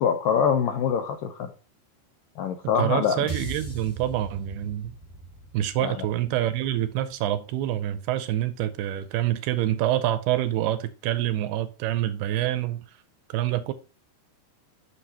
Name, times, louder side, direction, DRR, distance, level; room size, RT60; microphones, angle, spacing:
voice 1, 0.0-1.5 2.4-3.2 5.8-6.1, left 7 dB, 90° left, 1.9 m, -24 dB
voice 2, 2.8-4.9 5.5-12.8 13.3-13.7, right 13 dB, 85° right, 2.4 m, -26 dB
sound 1, 3.3-7.6, right 2 dB, 55° left, 3.3 m, -40 dB
9.5 x 6.4 x 2.8 m
omnidirectional pair, 4.9 m